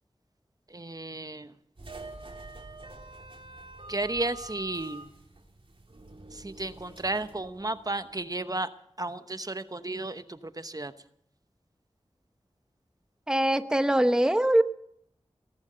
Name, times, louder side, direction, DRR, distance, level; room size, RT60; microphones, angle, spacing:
voice 1, 0.7-1.5 3.9-5.1 6.3-8.7 9.0-10.9, right 2 dB, 35° right, 11 dB, 0.9 m, -33 dB
sound 1, 1.8-8.3, right 2 dB, 55° right, 3.2 m, -46 dB
voice 2, 13.3-14.6, right 1 dB, 5° right, 10 dB, 0.9 m, -22 dB
18.5 x 11.5 x 6.7 m, 0.70 s
cardioid pair, 40°, 11 cm